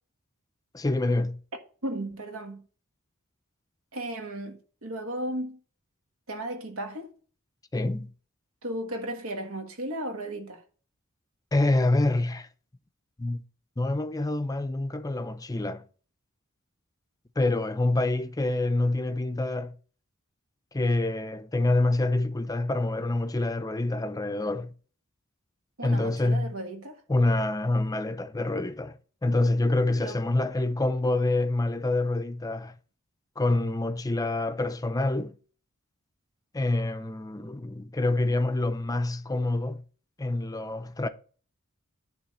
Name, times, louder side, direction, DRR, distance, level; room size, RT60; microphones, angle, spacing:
voice 1, 0.7-1.4 7.7-8.1 11.5-12.5 13.2-13.4 13.8-15.8 17.4-19.8 20.7-24.7 25.8-26.5 27.1-32.7 33.4-35.4 36.5-39.8 40.2-41.1, left 2 dB, 15° left, 0.5 m, -26 dB
voice 2, 1.8-2.6 3.9-5.6 6.3-7.1 8.6-10.6 25.8-27.0 30.0-30.2, right 1 dB, 80° right, 1.5 m, -35 dB
10.0 x 3.4 x 6.8 m
head